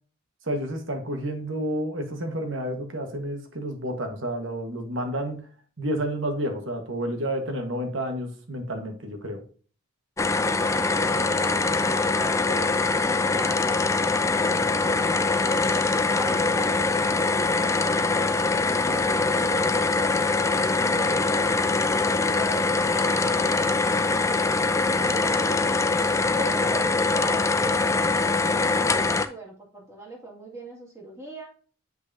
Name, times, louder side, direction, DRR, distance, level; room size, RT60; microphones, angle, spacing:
voice 1, 0.4-5.5 5.8-9.4, right 1 dB, 60° right, 5 dB, 1.5 m, -30 dB
sound 1, 10.2-29.3, left 3 dB, 15° left, 0.3 m, -23 dB
voice 2, 10.6-14.0 14.4-15.8 16.1-19.9 20.8-21.6 22.1-23.4 23.9-24.3 24.8-25.8 26.3-31.5, right 1 dB, 15° right, -3 dB, 2.2 m, -40 dB
7.8 x 5.6 x 2.8 m, 0.42 s
head